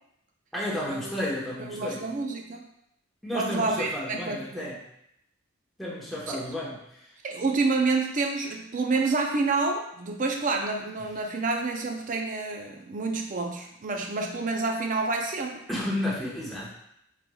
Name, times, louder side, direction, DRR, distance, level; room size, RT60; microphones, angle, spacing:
voice 1, 0.5-2.1 3.2-4.8 5.8-7.1 15.7-16.7, left 1 dB, ahead, -7 dB, 1.0 m, -32 dB
voice 2, 1.7-2.7 3.3-4.7 6.3-6.4 7.2-15.6, right 3 dB, 40° right, 3 dB, 0.5 m, -28 dB
5.4 x 3.1 x 2.3 m, 0.77 s
head